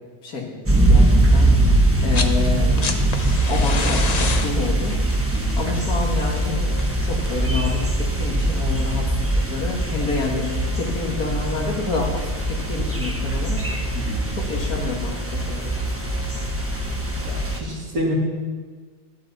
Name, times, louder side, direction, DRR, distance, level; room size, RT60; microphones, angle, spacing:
sound 1, 0.7-17.6, right 1 dB, 10° right, 1.1 m, -21 dB
sound 2, 1.9-2.4 2.6-7.5 8.8-8.9, left 4 dB, 40° left, 0.6 m, -29 dB
voice 1, 2.0-2.9 3.5-4.9 5.6-6.7 7.0-10.5 10.7-13.6 14.3-15.7, left 3 dB, 90° left, 0 dB, 2.3 m, -28 dB
voice 2, 5.3-5.6 13.9-14.3 17.2-18.1, equal, 75° right, -3 dB, 2.9 m, -29 dB
12.5 x 11.5 x 4.1 m, 1.5 s
omnidirectional pair, 1.5 m